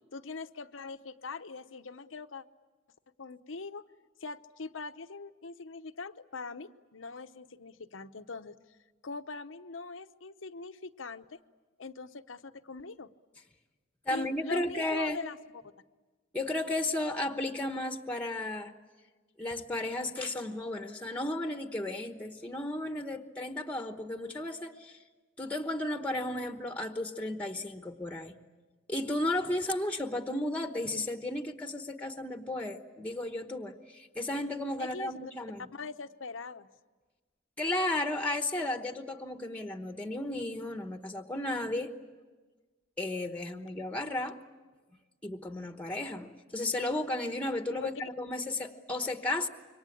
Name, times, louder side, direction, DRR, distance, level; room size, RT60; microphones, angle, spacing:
voice 1, 0.1-2.4 3.2-3.8 4.2-8.6 9.0-11.4 11.8-13.1 14.1-15.4 34.8-35.3 35.7-36.7 47.8-47.9, left 4 dB, 85° left, 10 dB, 0.9 m, -42 dB
voice 2, 14.0-15.2 16.3-18.7 19.4-25.0 25.4-28.4 28.9-35.7 37.6-41.9 43.0-44.4 45.2-49.5, left 1 dB, 5° left, 6 dB, 1.1 m, -34 dB
27.0 x 24.0 x 8.6 m, 1.3 s
head